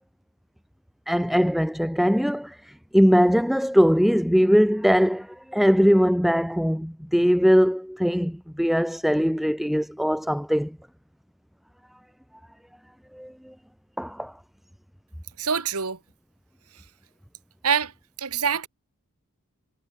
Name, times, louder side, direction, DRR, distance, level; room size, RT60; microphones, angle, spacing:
voice 1, 1.1-2.6 2.9-10.8 13.1-13.5 14.0-14.3, equal, ahead, 0.9 m, -21 dB
voice 2, 15.4-16.0 17.6-17.9 18.2-18.7, right 6 dB, 85° right, 2.0 m, -25 dB
head